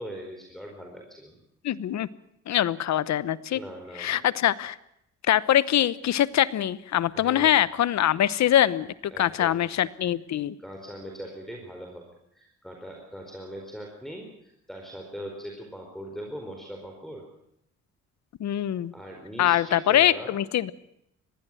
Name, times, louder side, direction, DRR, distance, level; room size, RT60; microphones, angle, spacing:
voice 1, 0.0-1.4 3.5-4.2 7.1-7.6 9.1-9.6 10.6-12.1 12.3-17.2 18.9-20.3, equal, ahead, 0 dB, 4.5 m, -40 dB
voice 2, 1.6-2.1 2.5-3.6 4.0-4.8 5.3-8.9 9.2-10.5 18.4-18.9 19.4-20.7, left 11 dB, 65° left, 18 dB, 1.0 m, -23 dB
21.0 x 16.0 x 9.2 m, 0.77 s
cardioid pair, 90°, 30 cm